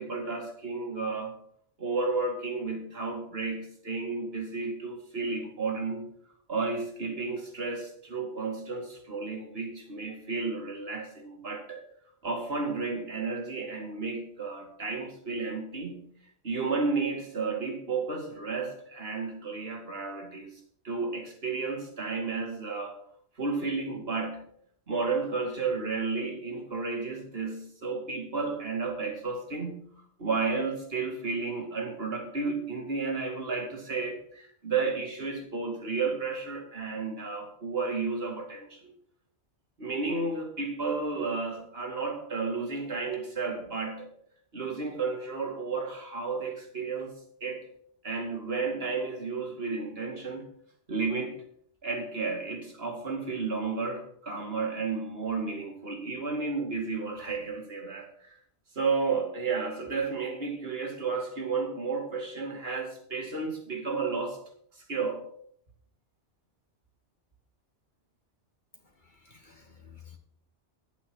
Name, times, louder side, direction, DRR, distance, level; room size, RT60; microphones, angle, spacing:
voice 1, 0.0-1.4 1.8-6.1 6.5-11.8 12.2-16.0 16.4-20.6 20.8-23.0 23.4-24.4 24.9-29.9 30.2-38.9 39.8-44.1 44.5-47.1 47.4-47.7 48.0-50.5 50.9-51.4 51.8-58.4 58.7-64.4 64.8-65.2, right 4 dB, 60° right, 3 dB, 2.6 m, -32 dB
voice 2, 69.0-70.2, left 8 dB, 45° left, 4 dB, 1.2 m, -53 dB
10.5 x 8.4 x 6.2 m, 0.63 s
omnidirectional pair, 1.2 m